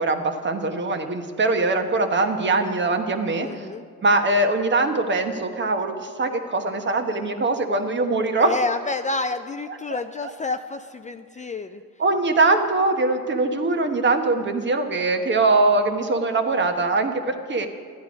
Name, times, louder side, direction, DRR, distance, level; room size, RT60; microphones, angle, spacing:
voice 1, 0.0-3.7 4.0-8.5 9.9-10.0 12.0-17.7, right 3 dB, 40° right, 6 dB, 1.2 m, -22 dB
voice 2, 3.4-3.8 8.4-11.8, left 3 dB, 25° left, 8 dB, 0.4 m, -29 dB
12.5 x 10.0 x 5.2 m, 2.1 s
cardioid pair, 90°, 30 cm